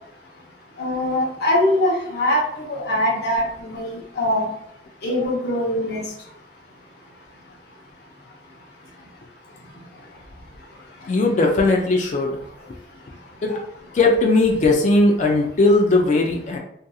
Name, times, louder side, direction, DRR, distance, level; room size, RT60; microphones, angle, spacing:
voice 1, 0.8-4.5 5.0-6.0, left 1 dB, 60° left, -3 dB, 0.7 m, -22 dB
voice 2, 11.1-12.4 13.4-13.6 13.9-16.6, left 2 dB, 40° left, 1 dB, 0.3 m, -18 dB
2.7 x 2.5 x 2.3 m, 0.74 s
head